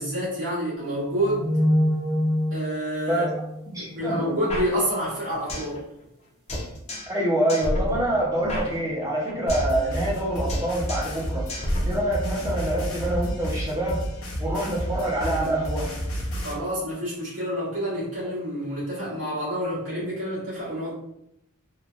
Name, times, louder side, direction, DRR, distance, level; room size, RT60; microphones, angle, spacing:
voice 1, 0.0-1.5 2.5-3.3 3.8-5.8 16.3-20.9, equal, 75° right, -10 dB, 1.4 m, -28 dB
sound 1, 0.8-4.2, equal, 45° right, 1.0 m, -26 dB
voice 2, 3.7-4.4 7.1-11.5 11.8-14.0 14.4-15.9, right 1 dB, 15° right, -4 dB, 0.6 m, -26 dB
sound 2, 4.5-5.8 6.0-6.1 6.5-7.2 7.5-9.8 10.0-10.2 10.5-11.2 11.5-12.5, left 1 dB, 30° left, 0.5 m, -31 dB
sound 3, 9.5-16.5, equal, 65° left, 0.7 m, -30 dB
3.1 x 2.2 x 2.4 m, 0.81 s
head